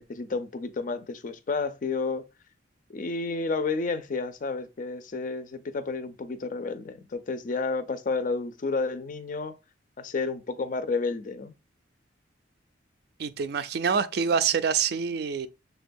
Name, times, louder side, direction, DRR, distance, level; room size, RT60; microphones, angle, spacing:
voice 1, 0.0-2.2 2.9-9.5 10.0-11.5, left 4 dB, 40° left, 0.4 m, -31 dB
voice 2, 13.2-15.5, right 6 dB, 55° right, 0.3 m, -26 dB
6.7 x 2.2 x 2.5 m
head